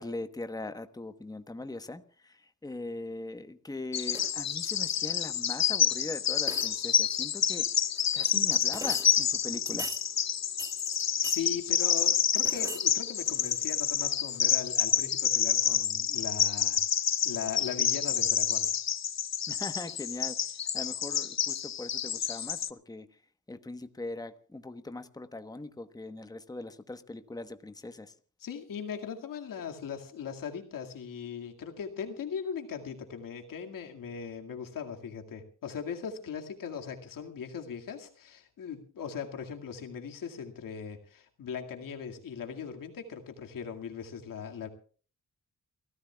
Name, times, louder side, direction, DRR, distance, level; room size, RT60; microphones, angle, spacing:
voice 1, 0.0-7.7 8.1-9.9 19.5-23.1 23.5-28.1, left 2 dB, 10° left, 9 dB, 1.1 m, -41 dB
Bird vocalization bird call bird song, 3.9-22.7, left 9 dB, 55° left, 0.8 m, -28 dB
sound 1, 4.1-4.5 5.9-6.0 6.4-7.0 8.0-9.2 9.7-10.1 10.6-11.4 11.9-12.9 13.2-13.9 14.3-14.4, right 1 dB, 10° right, 1.7 m, -42 dB
voice 2, 11.2-16.8 17.2-18.8 28.4-44.7, left 7 dB, 85° left, 4 dB, 2.2 m, -39 dB
29.0 x 14.5 x 2.3 m, 0.41 s
cardioid pair, 70°, 32 cm